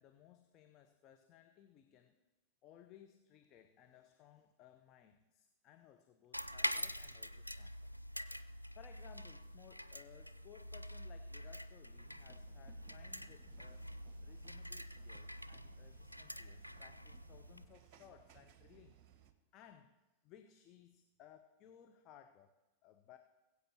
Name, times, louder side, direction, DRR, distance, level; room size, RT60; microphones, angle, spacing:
voice 1, 0.0-2.2 2.6-7.9 8.7-19.0 19.5-23.2, left 10 dB, 35° left, 6 dB, 0.8 m, -62 dB
sound 1, 6.3-17.7, equal, 90° right, 0.4 m, -46 dB
sound 2, 11.9-19.3, right 9 dB, 40° right, 1.1 m, -63 dB
21.0 x 8.1 x 4.4 m, 1.1 s
figure-of-eight pair, 90°, 0 cm